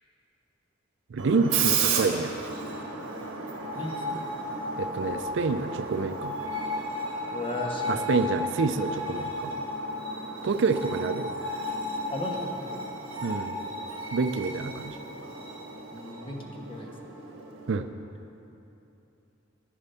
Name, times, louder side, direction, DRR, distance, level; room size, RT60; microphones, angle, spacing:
voice 1, 1.1-2.3 4.8-6.3 7.9-9.5 10.4-11.3 13.2-13.5 14.1-15.0 17.7-17.9, right 4 dB, 60° right, 10 dB, 0.4 m, -27 dB
Screech, 1.2-17.8, right 2 dB, 80° right, 1.5 m, -33 dB
voice 2, 3.7-4.3 7.3-8.1 12.1-12.5 15.9-16.9, left 1 dB, 25° left, 0 dB, 1.2 m, -35 dB
10.0 x 9.9 x 5.6 m, 3.0 s
head